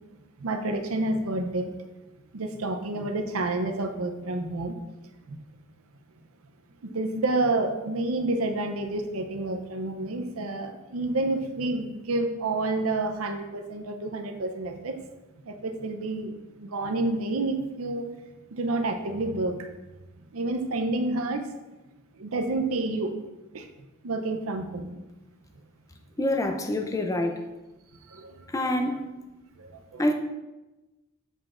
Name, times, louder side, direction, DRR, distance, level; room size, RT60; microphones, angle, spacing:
voice 1, 0.4-1.7 2.3-4.8 5.3-5.4 6.8-15.0 15.4-16.3 16.6-18.1 18.5-19.7 20.3-21.5 22.1-23.2 23.5-23.7 24.0-24.9 28.0-28.5 29.6-30.1, right 2 dB, 75° right, 7 dB, 0.6 m, -29 dB
voice 2, 26.2-27.4 28.5-29.1 30.0-30.1, left 1 dB, 15° left, 5 dB, 0.4 m, -26 dB
7.9 x 4.9 x 2.5 m, 1.1 s
head